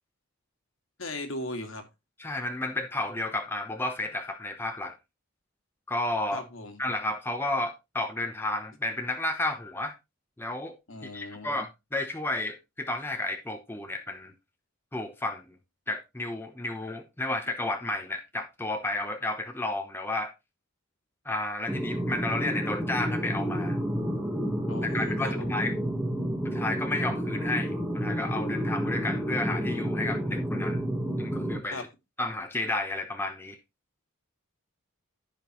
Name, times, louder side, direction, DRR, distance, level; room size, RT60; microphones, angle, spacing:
voice 1, 1.0-1.9 6.3-6.8 10.9-11.6 24.7-25.6 31.7-31.9, left 2 dB, 60° left, 2.0 m, -38 dB
voice 2, 2.2-4.9 5.9-6.4 6.8-9.9 10.4-10.8 11.1-14.3 14.9-15.6 15.9-20.3 21.2-23.8 24.8-25.7 26.4-30.8 31.2-31.9 32.2-33.6, left 2 dB, 10° left, 0.8 m, -32 dB
sound 1, 21.7-31.6, equal, 5° right, 1.5 m, -30 dB
14.0 x 5.2 x 3.0 m
head